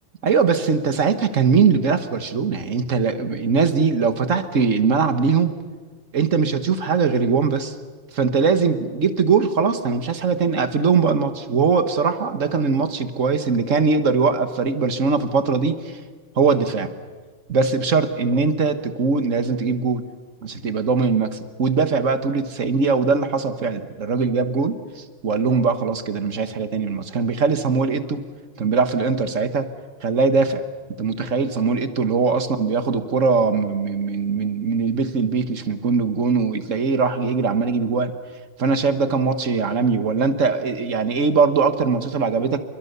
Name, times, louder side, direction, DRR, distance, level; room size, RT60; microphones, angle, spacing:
voice 1, 0.2-5.5 6.1-7.7 8.1-16.0 16.3-16.9 17.5-20.0 20.4-28.2 28.6-29.7 30.0-30.6 31.0-38.1 38.6-42.6, right 5 dB, 85° right, 9 dB, 1.8 m, -21 dB
28.5 x 23.5 x 6.9 m, 1.4 s
omnidirectional pair, 1.3 m